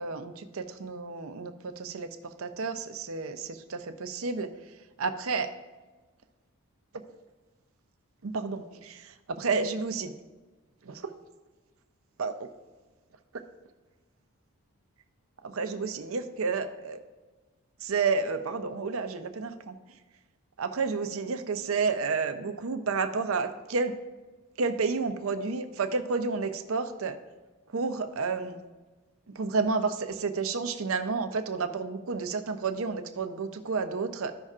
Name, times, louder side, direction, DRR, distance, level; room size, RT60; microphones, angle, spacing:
voice 1, 0.0-2.1 2.4-4.5 5.0-5.5 8.2-10.1 10.9-11.1 12.2-12.5 15.4-17.0 17.8-19.8 20.6-23.9 24.6-27.2 27.7-28.6 29.4-34.3, right 4 dB, 70° right, 8 dB, 0.6 m, -31 dB
14.0 x 5.4 x 2.5 m, 1.3 s
head